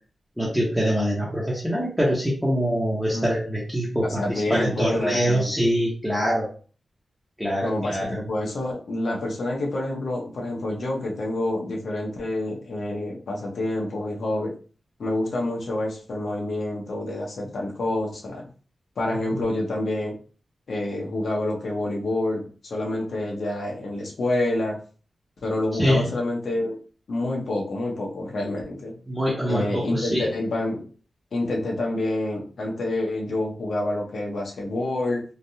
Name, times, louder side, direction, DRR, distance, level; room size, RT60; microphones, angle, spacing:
voice 1, 0.4-6.5 7.4-8.2 19.3-19.4 25.8-26.1 29.1-30.3, equal, ahead, -7 dB, 0.9 m, -24 dB
voice 2, 3.9-5.5 7.6-14.6 15.0-18.5 19.0-20.2 20.7-24.8 25.4-26.8 27.1-29.0 29.5-30.8 31.3-35.2, left 1 dB, 70° left, -1 dB, 0.9 m, -27 dB
3.4 x 2.3 x 2.7 m, 0.39 s
wide cardioid pair, 120°, 0 cm